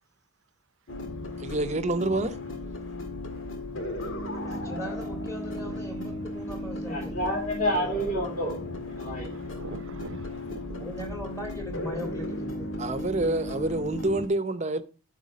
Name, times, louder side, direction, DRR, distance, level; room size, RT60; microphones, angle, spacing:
sound 1, 0.9-14.3, left 1 dB, 70° left, 1.9 m, -35 dB
voice 1, 1.4-2.4 12.8-14.8, right 2 dB, 35° right, 0.8 m, -27 dB
voice 2, 4.3-7.3 10.8-12.7, equal, 15° left, 2.1 m, -39 dB
voice 3, 6.8-9.3, equal, 40° left, 3.8 m, -29 dB
voice 4, 8.9-11.0, right 3 dB, 70° right, 0.7 m, -44 dB
12.5 x 4.7 x 5.2 m
head